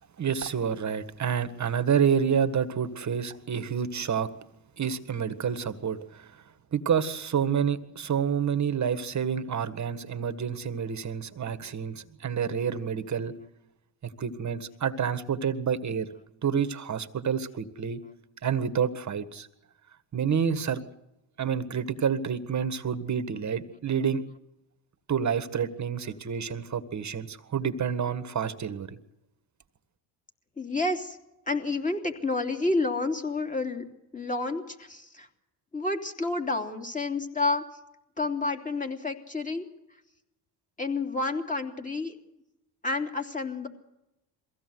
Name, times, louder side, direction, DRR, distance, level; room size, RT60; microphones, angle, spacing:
voice 1, 0.2-4.3 4.8-6.4 6.7-13.3 14.0-16.1 16.4-18.0 18.4-19.5 20.1-20.8 21.4-24.2 25.1-29.0, right 7 dB, 35° right, 11 dB, 1.7 m, -28 dB
voice 2, 30.6-31.2 31.5-33.8 34.1-35.3 35.7-37.7 38.2-39.7 40.8-42.1 42.8-43.7, left 3 dB, 15° left, 5 dB, 3.1 m, -29 dB
22.5 x 16.0 x 7.9 m, 0.93 s
supercardioid pair, 75°, 48 cm